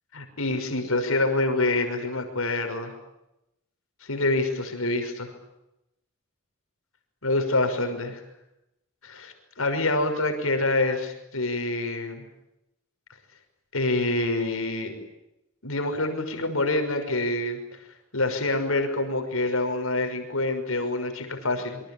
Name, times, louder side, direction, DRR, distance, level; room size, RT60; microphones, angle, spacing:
voice 1, 0.1-2.9 4.0-5.3 7.2-8.2 9.0-12.2 13.7-15.0 15.6-17.6 18.1-21.8, left 2 dB, 85° left, 7 dB, 5.9 m, -26 dB
27.5 x 24.5 x 8.8 m, 0.88 s
head